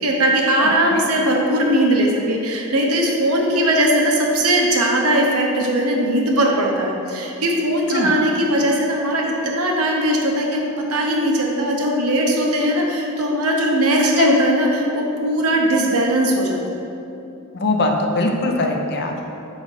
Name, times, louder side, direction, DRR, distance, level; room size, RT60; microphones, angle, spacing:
voice 1, 0.0-16.6, right 1 dB, 85° right, 0 dB, 0.8 m, -19 dB
voice 2, 0.6-1.1 3.4-3.7 7.9-8.1 14.2-14.4 17.5-19.2, left 2 dB, 50° left, 2 dB, 0.6 m, -21 dB
5.1 x 3.9 x 4.9 m, 2.8 s
head